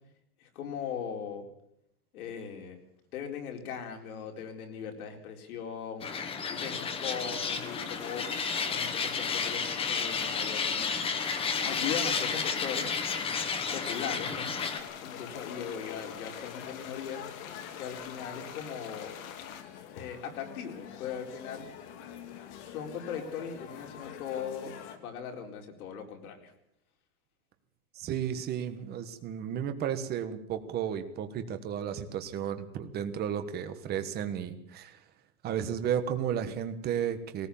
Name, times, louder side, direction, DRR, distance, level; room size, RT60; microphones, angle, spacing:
voice 1, 0.4-1.5 2.1-2.8 3.1-6.1 6.5-8.3 8.7-11.2 11.6-12.9 13.7-14.5 15.0-17.2 17.8-19.2 19.9-21.7 22.6-26.5, left 7 dB, 85° left, 3 dB, 4.4 m, -39 dB
sound 1, 6.0-14.8, left 5 dB, 15° left, 1.1 m, -32 dB
sound 2, 7.5-19.6, left 8 dB, 70° left, 2.7 m, -45 dB
sound 3, 14.6-25.0, left 9 dB, 50° left, 2.4 m, -46 dB
voice 2, 27.9-35.0 35.4-37.5, right 9 dB, 20° right, 8 dB, 1.4 m, -33 dB
19.5 x 19.0 x 7.2 m, 0.77 s
supercardioid pair, 175°, 43 cm